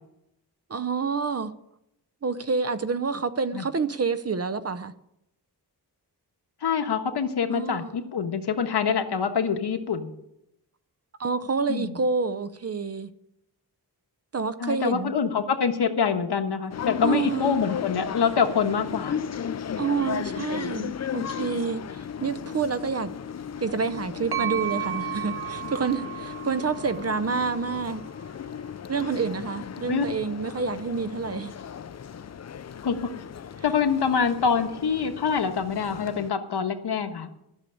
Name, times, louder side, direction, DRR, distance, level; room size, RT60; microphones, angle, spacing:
voice 1, 0.7-1.5 2.2-4.9 7.5-7.9 11.2-13.1 14.3-15.1 17.0-17.6 19.8-23.1 23.6-28.0 28.9-31.5, right 5 dB, 40° right, 0.7 m, -28 dB
voice 2, 6.6-10.1 11.7-12.0 14.6-19.2 29.9-30.0 32.8-33.1 33.6-37.3, left 6 dB, 80° left, 1.4 m, -25 dB
sound 1, 16.7-36.3, left 7 dB, 45° left, 0.5 m, -36 dB
sound 2, 24.3-28.1, right 12 dB, 75° right, 1.1 m, -34 dB
13.0 x 6.7 x 9.9 m
wide cardioid pair, 125°, 39 cm